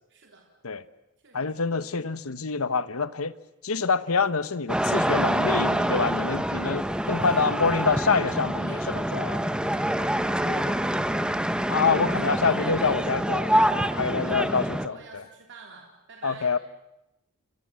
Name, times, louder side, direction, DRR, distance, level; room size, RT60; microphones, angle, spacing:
voice 1, 0.1-0.5 1.2-1.5 7.0-8.2 8.7-9.1 9.6-9.9 10.5-10.7 14.0-16.5, right 4 dB, 55° right, 3.5 m, -49 dB
voice 2, 1.3-3.3 3.6-9.4 10.4-10.7 11.7-15.2 16.2-16.6, left 4 dB, 75° left, 1.1 m, -26 dB
sound 1, 4.7-14.9, right 1 dB, 5° right, 1.1 m, -26 dB
29.5 x 25.0 x 7.5 m
head